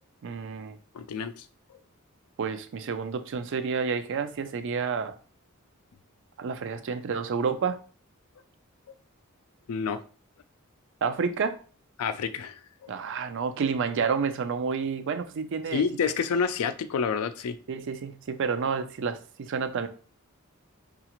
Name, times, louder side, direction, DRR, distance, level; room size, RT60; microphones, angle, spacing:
voice 1, 0.2-0.8 2.4-5.1 6.4-7.8 11.0-11.6 12.9-15.8 17.7-19.9, right 5 dB, 60° right, 0.4 m, -29 dB
voice 2, 0.9-1.4 9.7-10.0 12.0-12.5 12.8-12.9 15.7-17.6, left 6 dB, 85° left, 0.4 m, -28 dB
4.8 x 2.3 x 2.9 m
head